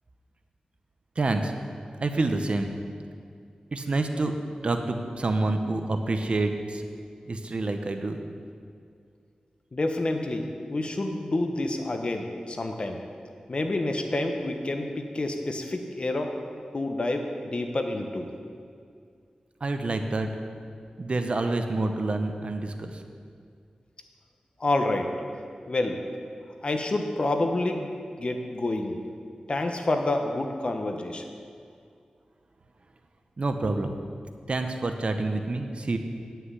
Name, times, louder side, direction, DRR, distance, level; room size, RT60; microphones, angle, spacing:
voice 1, 1.2-1.5 2.0-2.7 3.7-4.3 4.6-6.8 7.3-8.2 19.6-20.3 21.0-23.0 33.4-33.9 34.5-36.0, right 2 dB, 50° right, 6 dB, 0.8 m, -27 dB
voice 2, 9.7-13.0 13.5-16.3 16.7-18.3 24.6-25.1 25.7-26.0 26.6-27.9 28.2-29.0 29.5-31.2, left 2 dB, 45° left, 4 dB, 1.0 m, -28 dB
9.6 x 5.8 x 8.2 m, 2.3 s
wide cardioid pair, 75°, 2 cm